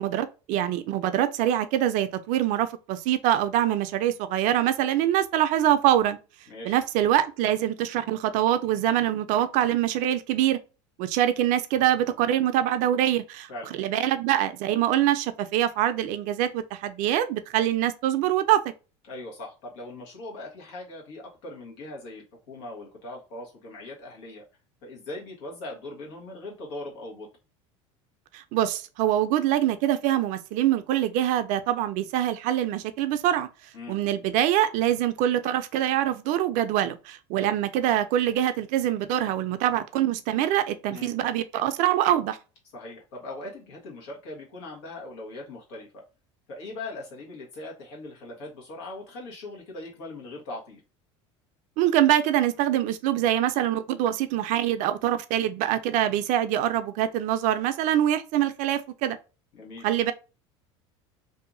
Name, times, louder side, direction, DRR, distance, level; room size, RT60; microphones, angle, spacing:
voice 1, 0.0-6.2 6.6-10.6 11.0-13.5 13.8-18.6 28.3-33.5 33.9-42.4 51.8-59.2 59.8-60.1, right 12 dB, 60° right, 0.4 m, -24 dB
voice 2, 19.1-24.4 24.8-27.3 33.7-34.0 40.9-41.1 42.7-46.0 46.5-50.8 59.5-59.9, left 2 dB, 75° left, 1.3 m, -40 dB
2.7 x 2.5 x 2.5 m
supercardioid pair, 95°, 15 cm